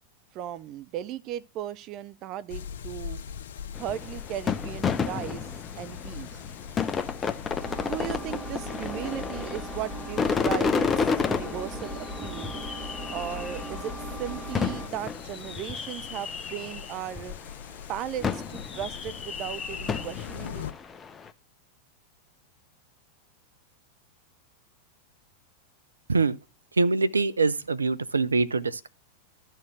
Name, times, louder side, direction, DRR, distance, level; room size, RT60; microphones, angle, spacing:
voice 1, 0.3-3.2 3.8-5.5 5.8-6.4 7.8-12.5 13.1-13.9 14.2-17.4 17.9-20.6, right 11 dB, 40° right, 0.7 m, -36 dB
sound 1, 2.5-20.7, left 8 dB, 60° left, 0.7 m, -42 dB
sound 2, 3.7-17.4 18.2-21.3, left 5 dB, 20° left, 0.8 m, -31 dB
Engine, 7.6-14.9, right 1 dB, 5° right, 2.4 m, -38 dB
voice 2, 26.8-28.9, right 3 dB, 75° right, 0.5 m, -24 dB
12.0 x 4.6 x 7.4 m
figure-of-eight pair, 90°, 0 cm